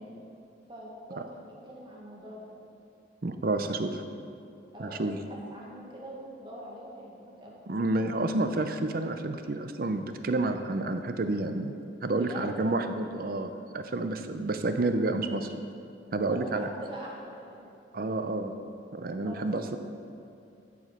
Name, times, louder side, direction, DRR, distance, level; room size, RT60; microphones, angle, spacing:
voice 1, 0.7-2.5 4.7-5.0 5.3-7.6 12.1-12.4 16.3-17.7 19.2-19.5, right 1 dB, 25° right, -3 dB, 1.5 m, -44 dB
voice 2, 3.2-4.0 4.8-5.2 7.7-15.6 16.1-16.7 17.9-18.5 18.9-19.8, right 2 dB, 55° right, 8 dB, 0.6 m, -30 dB
12.0 x 5.1 x 5.5 m, 2.5 s
head